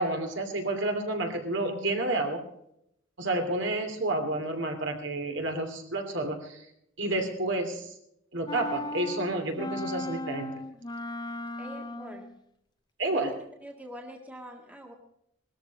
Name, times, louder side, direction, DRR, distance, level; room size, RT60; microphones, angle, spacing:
voice 1, 0.0-2.4 3.2-6.6 7.0-7.9 8.3-10.5 13.0-13.3, right 2 dB, 60° right, 4 dB, 2.8 m, -30 dB
sound 1, 8.5-12.4, left 1 dB, 20° left, 0.6 m, -37 dB
voice 2, 11.6-12.3 13.1-13.3 13.6-14.9, equal, 5° right, 2 dB, 1.7 m, -44 dB
19.0 x 13.5 x 4.1 m, 0.76 s
head